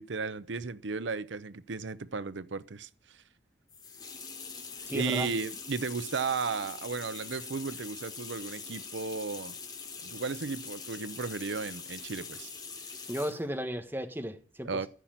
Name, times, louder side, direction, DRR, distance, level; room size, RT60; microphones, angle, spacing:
voice 1, 0.0-3.2 4.9-9.6 10.0-12.5 12.8-13.1 14.6-14.9, right 4 dB, 80° right, 0.7 m, -35 dB
sound 1, 3.7-13.5, left 5 dB, 20° left, 1.4 m, -43 dB
voice 2, 4.9-5.3 13.1-14.9, equal, 10° right, 1.4 m, -35 dB
14.5 x 5.8 x 9.1 m
head